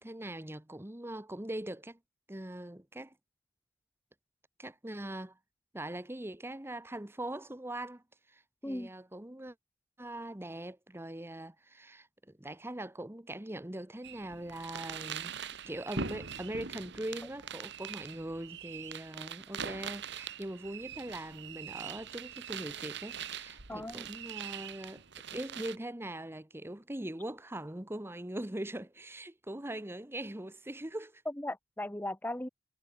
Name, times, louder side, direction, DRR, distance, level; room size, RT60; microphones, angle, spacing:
voice 1, 0.0-2.0 2.3-3.1 4.6-5.4 5.7-9.5 10.0-15.3 15.7-25.0 25.3-31.2, right 1 dB, 10° right, 1.0 m, -41 dB
sound 1, 14.0-25.8, right 7 dB, 60° right, 1.8 m, -42 dB
voice 2, 23.7-24.1 31.3-32.5, left 1 dB, 10° left, 1.2 m, -37 dB
head